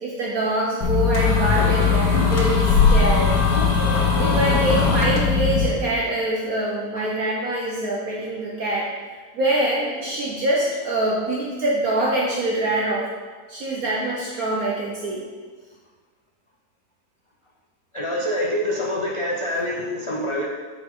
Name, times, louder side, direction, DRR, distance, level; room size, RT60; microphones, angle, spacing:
voice 1, 0.0-3.4 4.2-8.9 9.3-13.1 13.5-15.2, right 1 dB, 60° right, -4 dB, 1.4 m, -24 dB
sound 1, 0.8-5.7, left 5 dB, 65° left, 1.5 m, -19 dB
voice 2, 17.9-20.4, left 1 dB, 40° left, -3 dB, 0.4 m, -25 dB
8.3 x 5.1 x 3.8 m, 1.4 s
omnidirectional pair, 1.8 m